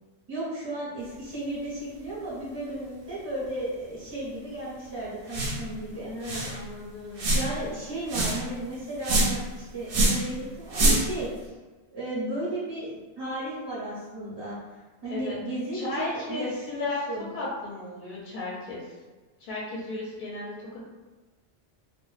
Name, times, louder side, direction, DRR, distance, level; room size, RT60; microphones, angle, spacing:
voice 1, 0.3-6.1 7.3-11.5 11.9-14.6 15.0-17.3, right 1 dB, 30° right, -8 dB, 0.5 m, -34 dB
sound 1, 5.3-5.6 5.9-6.0 6.2-6.6 7.2-7.6 8.1-8.4 9.0-9.5 9.9-10.3 10.7-11.2, right 1 dB, 65° right, 0.7 m, -24 dB
voice 2, 6.0-7.4 15.1-15.3 15.7-17.0 17.3-18.9 19.4-20.5, left 2 dB, 55° left, -5 dB, 0.6 m, -35 dB
2.1 x 2.0 x 3.1 m, 1.2 s
omnidirectional pair, 1.1 m